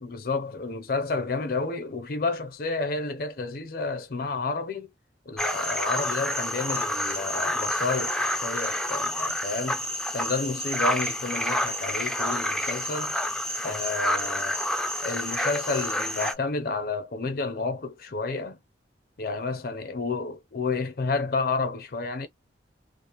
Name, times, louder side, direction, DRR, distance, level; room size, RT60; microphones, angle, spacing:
voice 1, 0.0-4.9 5.3-9.8 10.1-13.2 13.6-14.6 15.0-18.6 19.2-22.3, left 3 dB, 55° left, 0.5 m, -30 dB
sound 1, 5.4-16.3, left 1 dB, 5° left, 0.3 m, -28 dB
2.5 x 2.0 x 2.9 m
head